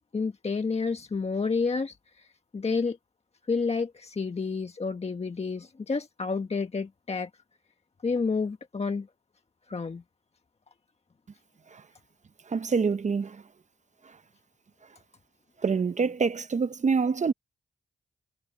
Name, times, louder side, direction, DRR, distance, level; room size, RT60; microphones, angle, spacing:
voice 1, 0.1-2.3 2.5-3.0 3.5-7.3 8.0-9.1 9.7-10.0, left 4 dB, 35° left, 1.4 m, -30 dB
voice 2, 12.5-13.4 14.0-14.2 15.6-17.3, right 5 dB, 45° right, 0.8 m, -26 dB
cardioid pair, 60°, 17 cm